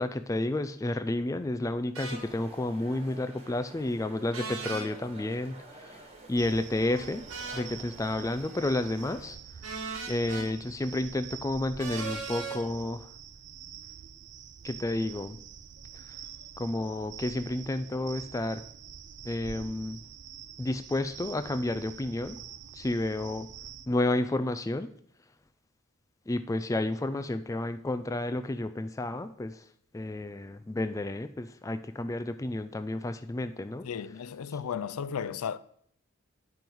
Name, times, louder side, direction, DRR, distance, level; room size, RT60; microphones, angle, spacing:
voice 1, 0.0-5.6 6.3-7.2 7.5-9.4 10.1-13.1 14.6-15.4 16.6-18.6 19.3-20.0 20.6-22.4 22.7-23.5 23.9-24.9 26.3-29.5 29.9-33.9, left 1 dB, 15° left, 0.3 m, -31 dB
sound 1, 1.9-2.2 4.3-4.9 7.3-7.7 9.6-10.5 11.8-12.6, right 4 dB, 75° right, 1.5 m, -37 dB
sound 2, 2.0-9.3, right 2 dB, 25° right, 1.4 m, -50 dB
sound 3, 6.4-23.9, right 8 dB, 50° right, 0.4 m, -46 dB
voice 2, 33.8-35.6, left 7 dB, 90° left, 0.4 m, -34 dB
9.3 x 5.3 x 4.6 m
head